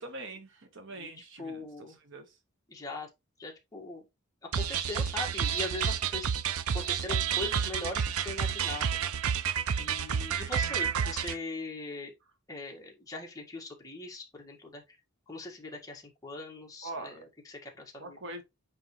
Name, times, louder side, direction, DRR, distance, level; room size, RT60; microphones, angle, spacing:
voice 1, 0.0-1.7 2.0-2.4 16.8-17.2 18.0-18.4, right 2 dB, 60° right, 1.2 m, -42 dB
voice 2, 1.4-2.0 2.7-3.1 3.4-4.0 4.4-6.3 6.7-8.9 9.8-12.1 12.5-15.0 15.3-18.2, left 2 dB, 15° left, 1.7 m, -41 dB
sound 1, 4.5-11.4, right 7 dB, 75° right, 0.5 m, -30 dB
9.1 x 3.5 x 3.1 m
head